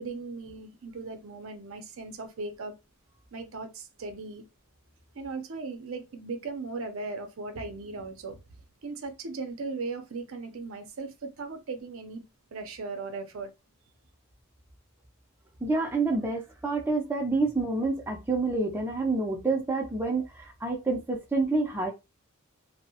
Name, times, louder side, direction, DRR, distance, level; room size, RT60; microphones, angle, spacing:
voice 1, 0.0-2.7 3.3-4.4 5.1-8.4 8.8-12.2 12.5-13.5, right 3 dB, 65° right, 0.5 m, -37 dB
voice 2, 15.6-21.9, right 3 dB, 10° right, 0.4 m, -28 dB
2.6 x 2.0 x 2.7 m
head